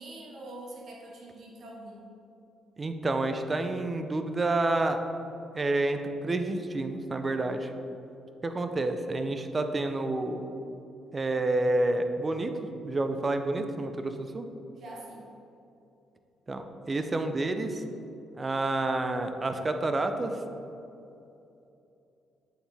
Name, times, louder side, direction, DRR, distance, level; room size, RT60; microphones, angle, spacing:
voice 1, 0.0-2.1 14.7-15.3, right 1 dB, 60° right, -2 dB, 1.2 m, -44 dB
voice 2, 2.8-5.0 5.5-7.7 8.4-10.4 11.1-12.5 12.8-14.5 16.5-17.8 18.4-20.4, right 2 dB, 30° right, 7 dB, 0.5 m, -29 dB
9.1 x 4.1 x 3.4 m, 2.8 s
cardioid pair, 90°, 0 cm